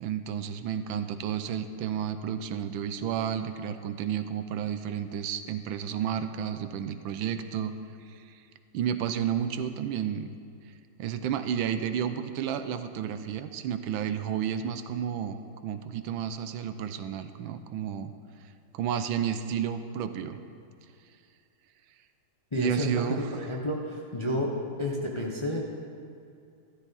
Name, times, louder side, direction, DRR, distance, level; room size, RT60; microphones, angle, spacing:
voice 1, 0.0-7.7 8.1-8.2 8.7-10.3 11.0-18.1 18.7-20.4 22.6-23.3, right 9 dB, 80° right, 9 dB, 1.4 m, -31 dB
voice 2, 22.5-24.5 24.8-25.6, left 1 dB, 25° left, -1 dB, 0.7 m, -30 dB
13.0 x 12.5 x 4.0 m, 2.4 s
omnidirectional pair, 2.2 m